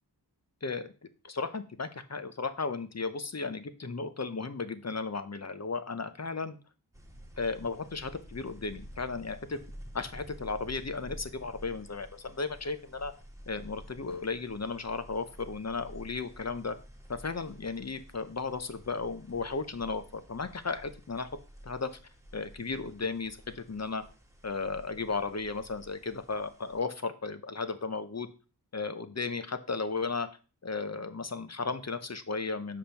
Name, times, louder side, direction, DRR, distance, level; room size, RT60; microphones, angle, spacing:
voice 1, 0.6-0.9 1.2-6.6 7.4-9.6 9.9-13.1 13.5-16.8 17.1-21.3 21.6-21.9 22.3-24.0 24.4-28.3 28.7-30.3 30.6-32.8, left 4 dB, 40° left, 11 dB, 0.8 m, -35 dB
sound 1, 6.9-26.8, equal, 5° right, 1.6 m, -51 dB
5.3 x 5.0 x 5.8 m, 0.35 s
wide cardioid pair, 65°, 41 cm